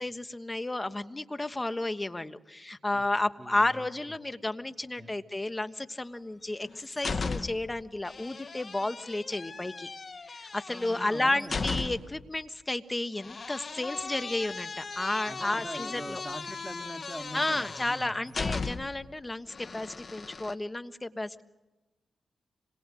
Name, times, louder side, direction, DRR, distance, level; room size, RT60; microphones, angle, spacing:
voice 1, 0.0-9.9 10.3-16.2 17.3-21.4, left 2 dB, 20° left, 11 dB, 1.3 m, -32 dB
voice 2, 3.4-3.9 5.0-5.1 10.7-11.8 15.3-18.1, right 1 dB, 5° right, 5 dB, 2.5 m, -43 dB
sound 1, 6.4-7.7 8.0-12.2 13.2-19.0 19.5-20.5, left 4 dB, 45° left, 1.6 m, -37 dB
26.5 x 22.0 x 7.7 m, 1.1 s
cardioid pair, 75°, 0 cm